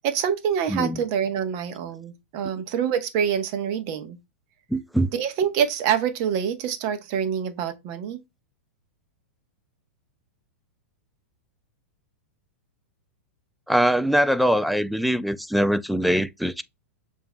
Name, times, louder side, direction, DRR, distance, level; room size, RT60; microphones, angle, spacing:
voice 1, 0.0-4.2 5.1-8.2, right 8 dB, 45° right, 1.0 m, -26 dB
voice 2, 0.7-1.0 4.7-5.1 13.7-16.6, equal, ahead, 0.3 m, -22 dB
6.8 x 2.7 x 2.2 m
hypercardioid pair, 120°, 7 cm